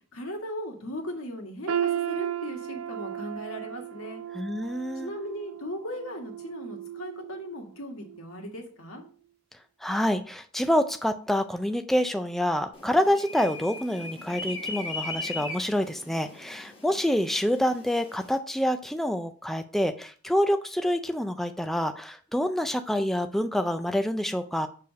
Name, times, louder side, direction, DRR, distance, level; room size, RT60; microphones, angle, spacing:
voice 1, 0.1-4.2 4.9-9.0, equal, 85° left, 2 dB, 1.7 m, -38 dB
sound 1, 1.7-7.6 8.0-8.3 9.0-9.1, right 10 dB, 75° right, 0.4 m, -34 dB
voice 2, 4.3-5.1 9.8-24.7, equal, ahead, 7 dB, 0.3 m, -27 dB
sound 2, 12.7-18.4, left 3 dB, 25° left, 1.2 m, -39 dB
6.6 x 3.4 x 5.1 m, 0.43 s
head